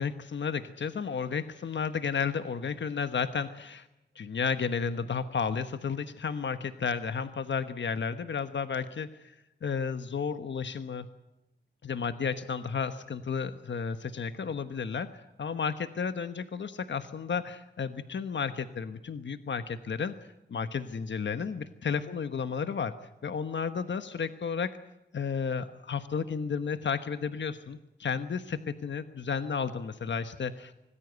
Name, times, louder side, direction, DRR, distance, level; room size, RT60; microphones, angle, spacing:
voice 1, 0.0-3.9 4.1-9.3 9.6-11.1 11.8-20.1 20.5-22.9 23.2-24.7 25.1-30.7, left 6 dB, 75° left, 10 dB, 1.2 m, -32 dB
26.5 x 19.5 x 8.1 m, 0.93 s
wide cardioid pair, 110°, 19 cm